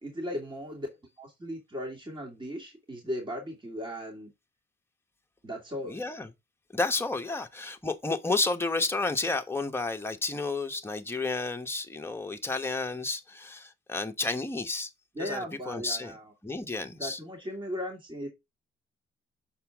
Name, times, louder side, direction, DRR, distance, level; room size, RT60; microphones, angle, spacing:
voice 1, 0.0-0.9 1.2-4.3 5.4-6.0 15.1-16.3 17.0-18.3, equal, 25° right, 2.5 m, -37 dB
voice 2, 5.9-6.3 6.7-14.9 15.2-16.1 16.4-17.2, left 3 dB, 10° left, 1.1 m, -31 dB
7.0 x 4.4 x 3.6 m
cardioid pair, 90°, 20 cm